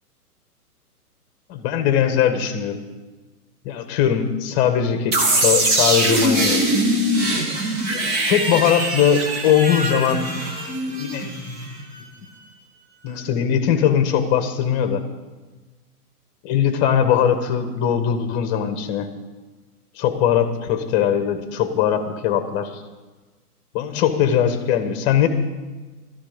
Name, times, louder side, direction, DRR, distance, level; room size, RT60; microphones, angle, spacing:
voice 1, 1.5-2.8 3.6-6.8 8.2-10.3 11.0-11.3 13.0-15.0 16.4-19.1 20.0-22.8 23.7-25.3, left 9 dB, 25° left, 8 dB, 1.5 m, -20 dB
sound 1, 5.1-11.9, right 1 dB, 30° right, 2.7 m, -22 dB
15.0 x 13.5 x 5.2 m, 1.2 s
hypercardioid pair, 140°, 46 cm